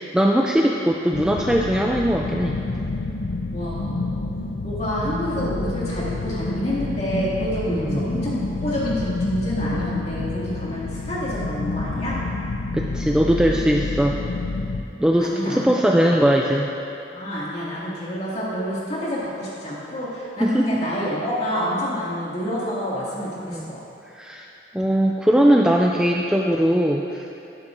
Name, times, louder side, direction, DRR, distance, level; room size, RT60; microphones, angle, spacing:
voice 1, 0.0-2.6 5.0-5.2 7.7-8.1 12.7-14.2 15.0-16.7 20.4-20.8 23.5-23.7 24.1-24.5 24.7-27.3, equal, 5° right, 0 dB, 0.3 m, -20 dB
sound 1, 1.1-14.8, left 2 dB, 60° left, 0.5 m, -28 dB
voice 2, 3.5-4.3 4.6-12.2 15.2-15.7 16.0-16.2 16.4-16.5 17.1-23.8, equal, 35° left, -7 dB, 2.2 m, -28 dB
12.0 x 11.0 x 2.6 m, 2.8 s
head